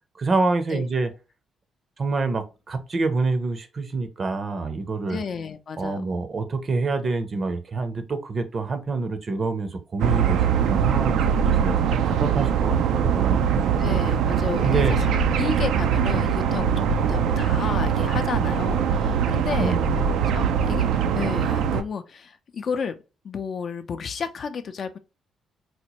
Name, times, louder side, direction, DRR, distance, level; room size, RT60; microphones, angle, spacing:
voice 1, 0.2-1.1 2.0-5.2 5.8-13.5 13.7-13.8 14.6-14.9 19.6-20.0, right 3 dB, 40° right, 0.6 m, -27 dB
voice 2, 5.1-6.0 13.8-23.0 23.2-25.0, left 6 dB, 50° left, 0.4 m, -32 dB
sound 1, 10.0-21.8, right 7 dB, 85° right, 0.3 m, -22 dB
4.1 x 2.1 x 2.8 m
cardioid pair, 90°, 0 cm